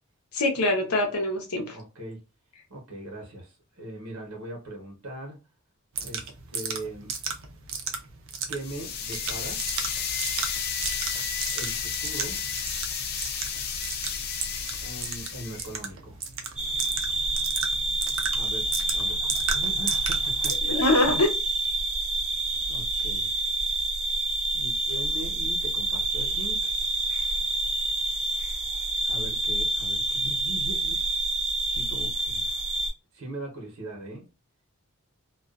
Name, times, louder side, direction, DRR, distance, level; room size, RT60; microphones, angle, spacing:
voice 1, 0.3-1.8 20.7-21.3, left 2 dB, 90° left, 2 dB, 0.8 m, -23 dB
voice 2, 1.7-2.2 2.7-5.4 6.0-7.1 8.5-9.6 11.5-12.4 14.8-16.2 18.3-21.2 22.7-23.3 24.5-26.7 29.0-31.0 31.7-32.5 33.1-34.3, right 1 dB, 85° right, 0 dB, 0.9 m, -40 dB
sound 1, 5.9-20.6, right 6 dB, 60° right, 0.5 m, -35 dB
sound 2, 8.6-15.8, left 6 dB, 45° left, 0.4 m, -32 dB
sound 3, 16.6-32.9, right 2 dB, 5° right, 0.6 m, -28 dB
2.4 x 2.3 x 2.4 m, 0.30 s
head